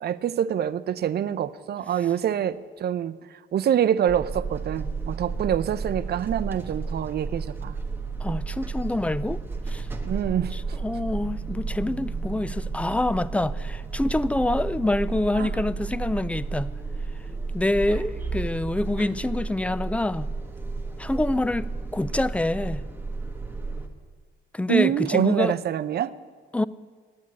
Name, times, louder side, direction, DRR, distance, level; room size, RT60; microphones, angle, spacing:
voice 1, 0.0-3.2 3.5-7.8 8.3-8.4 10.1-10.8 15.4-15.5 24.7-26.1, right 10 dB, 55° right, 0.5 m, -25 dB
sound 1, 4.1-23.9, right 4 dB, 10° right, 1.2 m, -32 dB
voice 2, 8.2-9.4 9.7-9.9 10.8-16.7 17.5-20.3 21.0-22.8 24.5-25.5 26.5-26.6, left 1 dB, 5° left, 0.3 m, -26 dB
9.5 x 8.5 x 9.7 m
cardioid pair, 90°, 20 cm